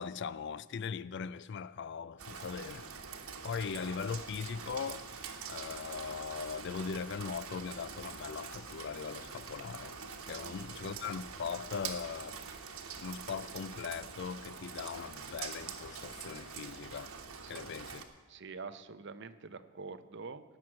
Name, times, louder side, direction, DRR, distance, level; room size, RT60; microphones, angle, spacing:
voice 1, 0.0-2.9 3.4-10.0 10.3-12.4 13.0-17.1 17.5-18.1, left 6 dB, 55° left, 0.4 m, -40 dB
Rain, 2.2-18.0, right 6 dB, 90° right, 1.3 m, -45 dB
voice 2, 10.4-11.0 17.4-17.6 18.3-20.4, right 4 dB, 55° right, 0.7 m, -46 dB
17.5 x 6.1 x 8.6 m
head